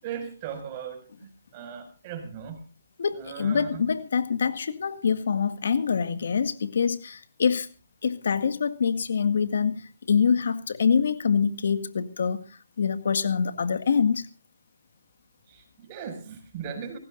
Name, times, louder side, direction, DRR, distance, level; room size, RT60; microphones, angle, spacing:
voice 1, 0.0-2.7 3.1-3.8 15.5-17.0, right 7 dB, 30° right, 7 dB, 5.9 m, -38 dB
voice 2, 3.0-7.7 8.0-12.4 12.8-14.3, left 6 dB, 65° left, 11 dB, 2.0 m, -25 dB
23.5 x 18.5 x 2.6 m, 0.34 s
hypercardioid pair, 155°, 0 cm